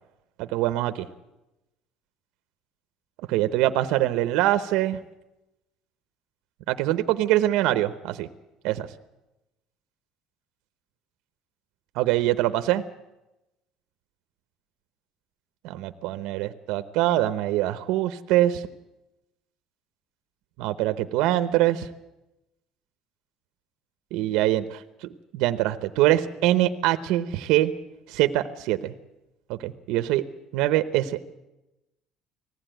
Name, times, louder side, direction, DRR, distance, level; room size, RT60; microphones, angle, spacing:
voice 1, 0.4-1.1 3.3-5.0 6.7-8.3 8.6-8.9 12.0-12.8 15.6-18.6 20.6-21.9 24.1-27.7 28.1-28.9 29.5-30.2 30.5-31.2, right 14 dB, 75° right, 10 dB, 0.8 m, -24 dB
19.5 x 15.0 x 9.1 m, 0.97 s
cardioid pair, 150°, 0 cm